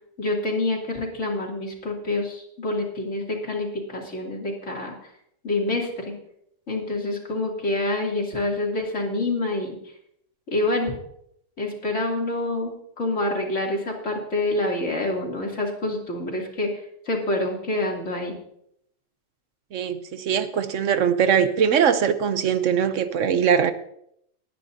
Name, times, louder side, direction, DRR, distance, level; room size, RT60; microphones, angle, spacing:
voice 1, 0.2-4.9 5.4-6.1 6.7-9.8 10.5-10.9 11.6-18.3, left 2 dB, 60° left, -1 dB, 3.1 m, -27 dB
voice 2, 19.7-23.7, right 7 dB, 70° right, 11 dB, 1.1 m, -21 dB
21.0 x 10.0 x 2.7 m, 0.73 s
omnidirectional pair, 1.4 m